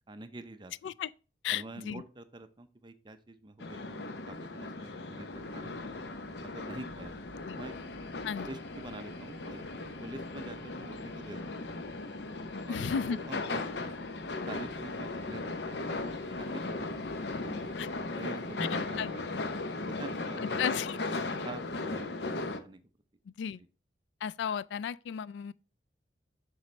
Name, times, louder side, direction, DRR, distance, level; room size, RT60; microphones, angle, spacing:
voice 1, 0.1-0.7 1.5-6.0 6.4-7.1 7.5-7.7 8.4-9.6 10.0-11.7 12.6-13.9 14.5-17.0 17.3-17.8 18.1-19.4 19.9-20.6 21.1-22.8, right 2 dB, 25° right, 0.6 m, -46 dB
voice 2, 1.4-2.0 7.4-7.6 8.2-8.5 12.7-13.2 17.8-17.9 19.0-19.1 20.6-21.2 23.4-23.6 24.2-25.5, left 8 dB, 85° left, 0.3 m, -34 dB
sound 1, 3.6-22.6, left 3 dB, 70° left, 0.7 m, -37 dB
sound 2, 5.3-18.0, equal, 10° left, 1.4 m, -57 dB
8.2 x 6.0 x 3.2 m
head